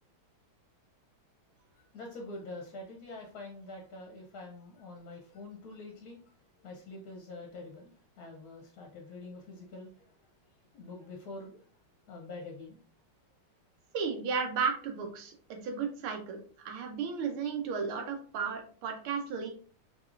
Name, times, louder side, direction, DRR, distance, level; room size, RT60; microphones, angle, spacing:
voice 1, 1.8-6.3 6.6-10.2 10.7-11.6 12.1-12.8, left 2 dB, 60° left, 1 dB, 1.0 m, -46 dB
voice 2, 13.9-19.5, right 6 dB, 80° right, 3 dB, 1.7 m, -34 dB
5.2 x 3.0 x 2.5 m, 0.43 s
omnidirectional pair, 2.3 m